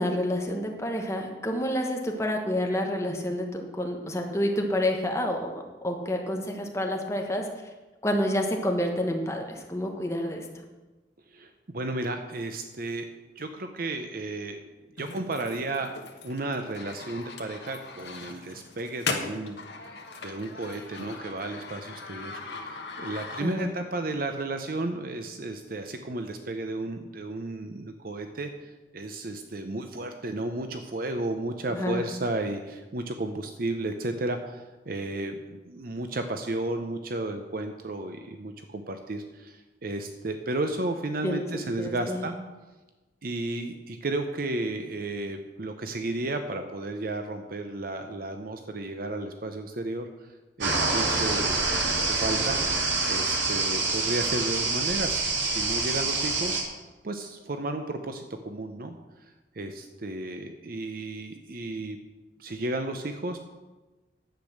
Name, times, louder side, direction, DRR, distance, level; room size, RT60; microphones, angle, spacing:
voice 1, 0.0-7.5 8.0-10.6 23.4-23.7 31.7-32.0 41.2-42.3, left 1 dB, 15° left, 2 dB, 1.2 m, -29 dB
voice 2, 11.3-13.1 13.4-15.9 16.2-20.0 20.2-42.4 43.2-50.3 50.6-56.6 57.0-59.0 59.5-62.0 62.4-63.4, right 2 dB, 50° right, 6 dB, 0.7 m, -33 dB
sound 1, 15.0-23.8, left 4 dB, 70° left, 1.3 m, -39 dB
sound 2, 50.6-56.6, right 3 dB, 90° right, 2.4 m, -26 dB
10.5 x 8.2 x 6.5 m, 1.2 s
head